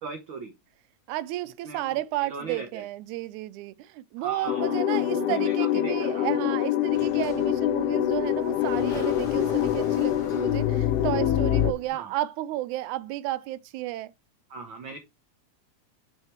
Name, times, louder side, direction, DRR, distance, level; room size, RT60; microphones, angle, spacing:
voice 1, 0.0-0.5 1.6-2.9 4.2-6.3 11.9-12.1 14.5-15.0, right 4 dB, 60° right, 1.4 m, -38 dB
voice 2, 1.1-14.1, right 15 dB, 90° right, 2.1 m, -32 dB
sound 1, 4.5-11.7, left 12 dB, 85° left, 1.3 m, -25 dB
Sliding door, 6.9-11.9, left 4 dB, 65° left, 0.7 m, -40 dB
6.4 x 4.9 x 4.4 m
omnidirectional pair, 3.4 m